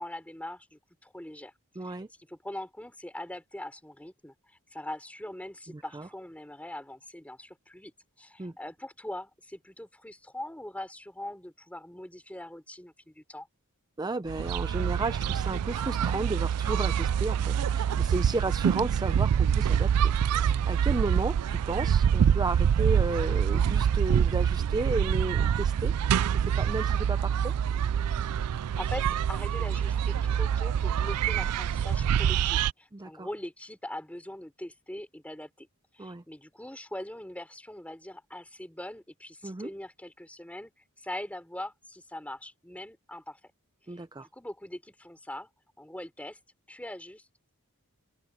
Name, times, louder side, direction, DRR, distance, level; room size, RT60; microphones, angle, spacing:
voice 1, 0.0-1.5 1.8-2.0 2.3-7.9 8.2-13.5 28.8-35.7 35.9-43.4 43.9-45.5 45.8-46.4 46.7-47.2, left 1 dB, 5° left, 3.3 m, -42 dB
voice 2, 1.8-2.1 5.7-6.1 8.4-8.5 14.0-25.9 26.3-27.5 32.9-33.3 36.0-36.2 39.4-39.7 43.9-44.3, right 2 dB, 20° right, 0.5 m, -33 dB
sound 1, 14.3-32.7, right 8 dB, 85° right, 0.4 m, -26 dB
open air
head